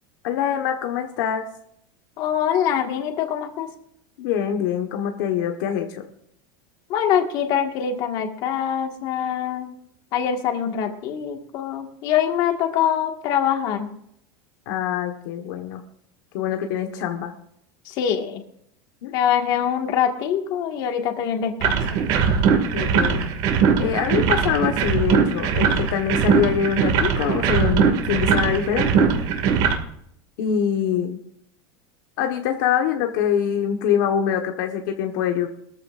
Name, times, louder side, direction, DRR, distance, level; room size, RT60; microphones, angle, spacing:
voice 1, 0.2-1.4 4.2-6.1 14.7-15.8 16.3-17.3 19.0-19.1 22.7-23.3 23.8-29.1 30.4-31.2 32.2-35.5, left 9 dB, 60° left, 3 dB, 1.4 m, -24 dB
voice 2, 2.2-3.7 6.9-9.7 10.1-13.9 17.9-18.4 19.1-21.8, left 9 dB, 40° left, 3 dB, 1.8 m, -24 dB
sound 1, 21.6-29.7, right 6 dB, 45° right, 2.2 m, -20 dB
22.0 x 14.0 x 2.6 m, 0.71 s
supercardioid pair, 175°, 12 cm